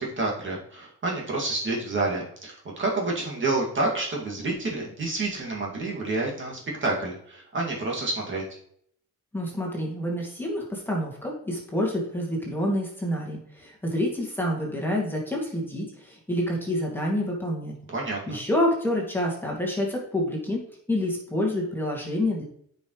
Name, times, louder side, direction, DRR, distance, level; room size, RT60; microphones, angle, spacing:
voice 1, 0.0-8.4 17.9-18.4, right 2 dB, 40° right, -2 dB, 2.3 m, -29 dB
voice 2, 9.3-17.8 18.3-22.4, left 1 dB, 5° left, -2 dB, 2.2 m, -28 dB
9.0 x 5.4 x 3.2 m, 0.66 s
cardioid pair, 90°, 30 cm